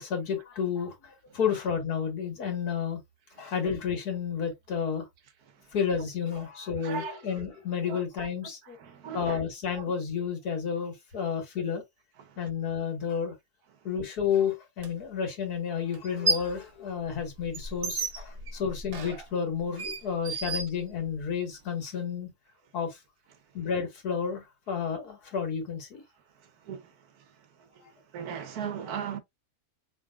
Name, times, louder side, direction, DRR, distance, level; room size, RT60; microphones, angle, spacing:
voice 1, 0.0-3.0 3.4-5.1 5.7-8.8 9.1-11.8 12.4-13.3 13.8-22.3 22.7-23.0 23.5-26.0, left 7 dB, 85° left, 2.1 m, -31 dB
voice 2, 6.8-7.2 7.9-8.0 8.8-9.5 12.3-12.4 20.3-20.4 26.6-26.9 27.8-27.9 28.1-29.2, right 7 dB, 80° right, 1.4 m, -37 dB
sound 1, 14.8-14.9 15.9-16.6 17.0-21.3, right 2 dB, 45° right, 1.0 m, -33 dB
5.2 x 3.4 x 2.3 m
omnidirectional pair, 1.6 m